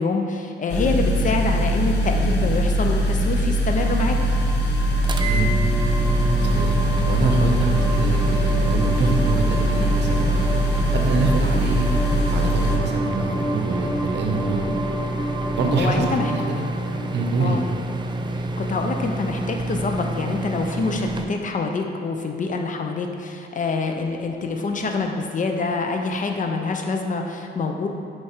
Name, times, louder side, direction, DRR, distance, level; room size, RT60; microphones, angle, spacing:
voice 1, 0.0-4.2 15.8-16.3 17.4-17.6 18.6-27.9, left 3 dB, 40° left, 3 dB, 0.6 m, -26 dB
sound 1, 0.7-12.8, equal, 60° left, 0.9 m, -21 dB
sound 2, 3.8-18.2, equal, 5° right, 0.9 m, -31 dB
sound 3, 5.0-21.2, right 2 dB, 25° right, 0.4 m, -29 dB
voice 2, 6.5-10.5 10.9-14.7 15.5-16.1 16.3-16.6 17.1-17.6, right 3 dB, 60° right, 2 dB, 0.8 m, -25 dB
4.8 x 4.4 x 4.4 m, 2.4 s
cardioid pair, 90°, 20 cm